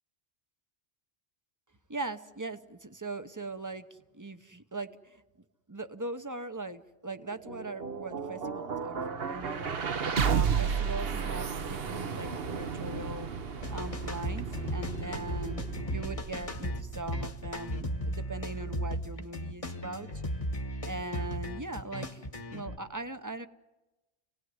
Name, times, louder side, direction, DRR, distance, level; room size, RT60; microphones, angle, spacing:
voice 1, 1.9-5.2 5.7-9.8 10.2-13.3 13.7-14.5 14.7-15.6 15.9-20.1 20.9-23.5, right 2 dB, 20° right, 10 dB, 0.8 m, -40 dB
sound 1, 7.2-19.3, right 6 dB, 60° right, 1.3 m, -34 dB
sound 2, 13.6-22.8, equal, 30° left, 1.3 m, -36 dB
28.5 x 18.5 x 9.6 m, 1.1 s
omnidirectional pair, 1.1 m